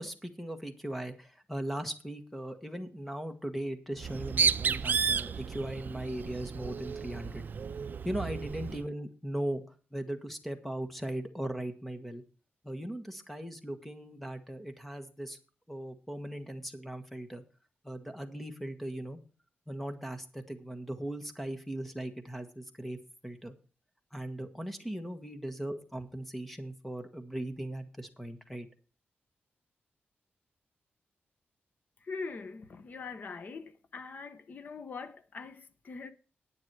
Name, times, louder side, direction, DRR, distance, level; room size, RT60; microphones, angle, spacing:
voice 1, 0.0-7.4 8.0-9.6 9.9-12.2 12.6-15.4 15.7-17.4 17.8-19.2 19.7-23.0 23.2-23.5 24.1-28.7, right 1 dB, 5° left, 1.4 m, -38 dB
Bird, 4.0-8.8, right 6 dB, 50° right, 0.5 m, -32 dB
voice 2, 32.0-36.1, left 4 dB, 45° left, 1.0 m, -42 dB
10.5 x 9.0 x 4.7 m
wide cardioid pair, 165°, 4 cm